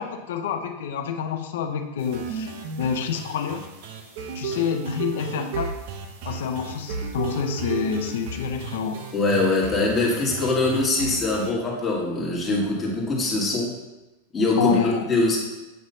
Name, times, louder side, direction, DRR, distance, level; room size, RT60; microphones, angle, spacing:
voice 1, 0.0-3.6 4.3-5.7 6.2-9.0 14.6-15.1, left 7 dB, 70° left, 5 dB, 0.6 m, -28 dB
sound 1, 2.0-11.5, right 5 dB, 55° right, 0.9 m, -34 dB
voice 2, 9.1-13.7 14.3-15.4, left 2 dB, 15° left, -4 dB, 1.6 m, -23 dB
8.0 x 3.1 x 5.5 m, 1.1 s
supercardioid pair, 155°, 0 cm